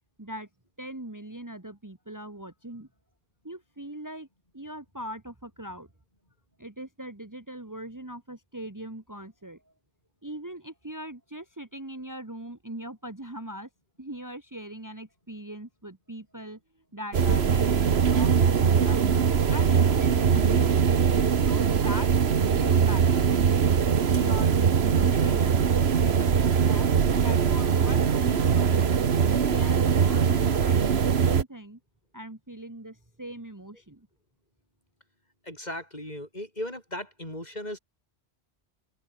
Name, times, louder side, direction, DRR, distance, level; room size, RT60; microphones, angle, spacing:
voice 1, 0.2-0.5 0.8-2.9 3.4-4.3 4.5-5.9 6.6-9.7 10.2-13.7 14.0-20.8 21.4-23.7 24.1-26.9 27.1-28.9 29.4-31.8 32.1-34.1, right 1 dB, 15° right, 1.8 m, -41 dB
sound 1, 17.1-31.4, right 7 dB, 65° right, 1.4 m, -22 dB
voice 2, 35.4-37.8, left 1 dB, 40° left, 7.5 m, -37 dB
open air
omnidirectional pair, 1.1 m